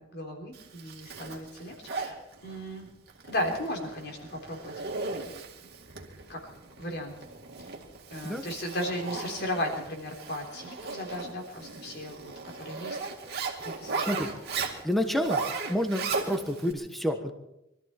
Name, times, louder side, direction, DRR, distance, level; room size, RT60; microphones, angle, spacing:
voice 1, 0.0-2.9 3.3-4.8 6.3-6.5 6.8-7.2 7.6-7.7 8.1-13.0 13.6-13.9, left 1 dB, 55° left, 1 dB, 3.6 m, -35 dB
Zipper (clothing), 0.5-16.7, right 4 dB, 55° right, 2.3 m, -37 dB
voice 2, 14.8-15.4 15.7-17.3, equal, ahead, 5 dB, 1.2 m, -29 dB
24.0 x 13.5 x 4.4 m, 0.86 s
head